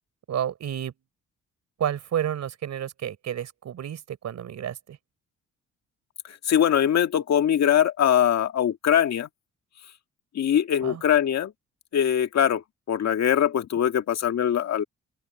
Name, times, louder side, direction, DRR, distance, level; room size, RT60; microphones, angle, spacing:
voice 1, 0.3-0.9 1.8-5.0 10.8-11.0, right 10 dB, 65° right, 4.5 m, -30 dB
voice 2, 6.3-9.3 10.3-11.5 11.9-12.6 12.9-14.8, left 9 dB, 60° left, 2.0 m, -22 dB
open air
cardioid pair, 90°, 30 cm